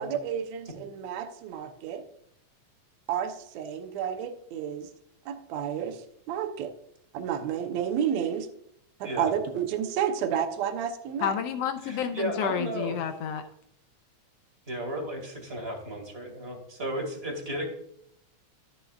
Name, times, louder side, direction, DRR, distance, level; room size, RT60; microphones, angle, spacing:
voice 1, 0.0-2.0 3.1-4.9 5.3-6.0 6.3-6.7 7.1-8.5 9.0-11.4, right 8 dB, 75° right, 7 dB, 2.0 m, -31 dB
voice 2, 11.2-13.5, left 8 dB, 75° left, 7 dB, 1.6 m, -30 dB
voice 3, 11.8-12.9 14.7-17.7, right 1 dB, 25° right, 3 dB, 1.9 m, -34 dB
13.5 x 6.5 x 2.4 m, 0.75 s
omnidirectional pair, 3.4 m